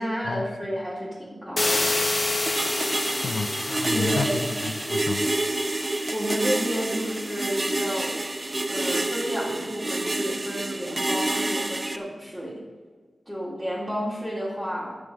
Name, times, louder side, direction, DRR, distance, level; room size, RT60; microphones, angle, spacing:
voice 1, 0.0-2.3 3.9-4.4 6.1-8.2 8.7-12.6 13.2-14.9, equal, 5° right, -9 dB, 3.2 m, -31 dB
sound 1, 1.6-8.4, left 2 dB, 35° left, 1.4 m, -30 dB
sound 2, 2.5-12.0, right 2 dB, 25° right, 0.5 m, -28 dB
voice 2, 3.1-5.3, left 4 dB, 80° left, 10 dB, 0.6 m, -31 dB
11.0 x 7.1 x 6.4 m, 1.5 s
wide cardioid pair, 105°, 0 cm